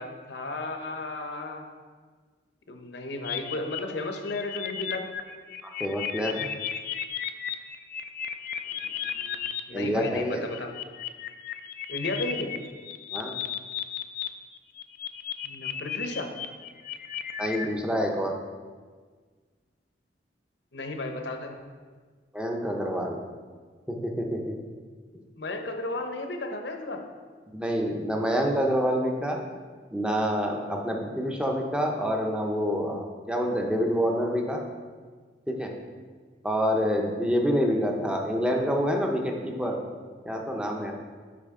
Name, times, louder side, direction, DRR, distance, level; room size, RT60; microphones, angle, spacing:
voice 1, 0.0-1.7 2.7-5.1 8.7-10.7 11.9-12.5 15.4-16.3 20.7-21.6 25.3-27.0, left 2 dB, 70° left, 4 dB, 0.9 m, -34 dB
sound 1, 3.2-9.6 10.3-14.3 14.5-17.7, left 9 dB, 50° left, 0.4 m, -34 dB
voice 2, 5.6-6.5 9.7-10.4 13.1-13.4 17.4-18.3 22.3-23.2 23.9-24.6 27.5-29.4 29.9-34.6 35.5-35.7 36.4-39.8 40.2-40.9, equal, 5° right, 1 dB, 0.7 m, -27 dB
8.6 x 5.1 x 3.7 m, 1.5 s
head